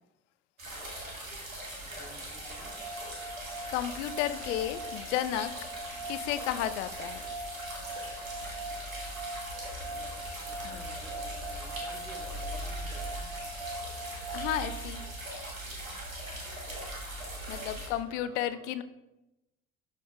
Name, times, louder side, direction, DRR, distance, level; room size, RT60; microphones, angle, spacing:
sound 1, 0.6-17.9, right 1 dB, 90° right, 1.2 m, -40 dB
voice 1, 1.8-2.8 5.9-6.1 9.6-13.3 17.7-18.7, equal, ahead, 1 dB, 1.8 m, -53 dB
sound 2, 2.6-15.5, right 1 dB, 55° right, 0.6 m, -42 dB
voice 2, 3.7-5.5 6.0-7.3 10.6-10.8 14.3-15.0 17.5-18.8, left 12 dB, 65° left, 12 dB, 0.5 m, -33 dB
11.0 x 5.2 x 2.2 m, 0.95 s
figure-of-eight pair, 55°, 40 cm